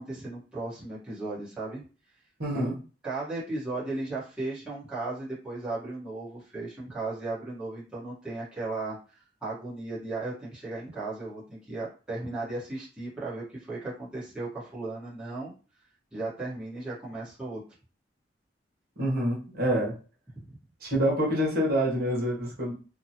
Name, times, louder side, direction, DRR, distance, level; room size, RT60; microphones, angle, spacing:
voice 1, 0.0-1.8 2.5-2.7 3.0-15.5 16.1-17.6 20.4-20.6, right 2 dB, 5° right, -9 dB, 1.1 m, -36 dB
voice 2, 2.4-2.8 19.0-19.9 20.8-22.7, equal, 60° right, -4 dB, 1.1 m, -26 dB
2.8 x 2.2 x 2.7 m, 0.36 s
head